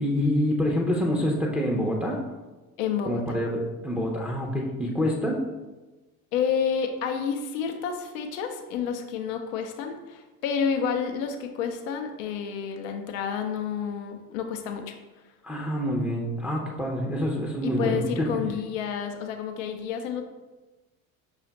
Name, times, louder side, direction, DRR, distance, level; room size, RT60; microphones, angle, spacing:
voice 1, 0.0-2.2 3.1-5.4 15.4-18.3, equal, 5° right, -2 dB, 0.6 m, -26 dB
voice 2, 2.8-3.4 6.3-14.9 17.6-20.2, left 7 dB, 65° left, 5 dB, 0.6 m, -30 dB
5.6 x 2.4 x 4.0 m, 1.2 s
figure-of-eight pair, 65°, 42 cm